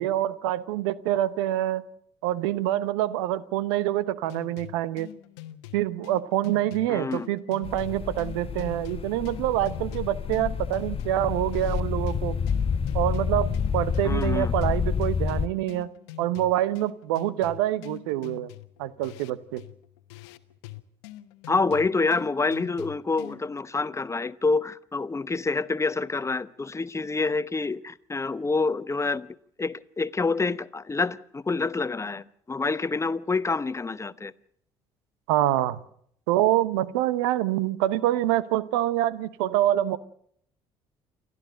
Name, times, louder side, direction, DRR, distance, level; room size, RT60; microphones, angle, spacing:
voice 1, 0.0-1.8 2.2-5.1 5.7-12.4 12.9-15.9 16.2-18.5 18.8-19.6 35.3-35.8 36.3-40.0, right 13 dB, 80° right, 0.8 m, -26 dB
sound 1, 4.3-23.6, left 14 dB, 80° left, 1.0 m, -44 dB
voice 2, 6.9-7.3 14.0-14.5 21.5-29.3 29.6-34.3, left 3 dB, 20° left, 0.9 m, -27 dB
sound 2, 7.6-15.5, left 6 dB, 45° left, 1.1 m, -29 dB
28.5 x 12.5 x 7.8 m
hypercardioid pair, 60°, 14 cm